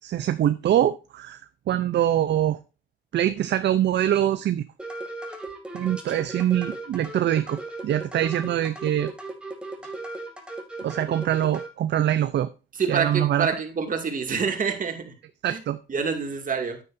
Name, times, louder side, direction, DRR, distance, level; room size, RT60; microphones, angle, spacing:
voice 1, 0.0-1.4 1.7-2.6 3.1-4.7 5.7-9.1 10.8-12.5 12.9-13.5 15.4-15.8, right 11 dB, 60° right, 0.6 m, -24 dB
sound 1, 4.8-11.7, right 2 dB, 5° right, 2.5 m, -37 dB
voice 2, 12.7-15.1 15.5-15.6 15.9-16.8, right 6 dB, 40° right, 2.5 m, -27 dB
9.6 x 9.5 x 2.7 m
cardioid pair, 90°, 20 cm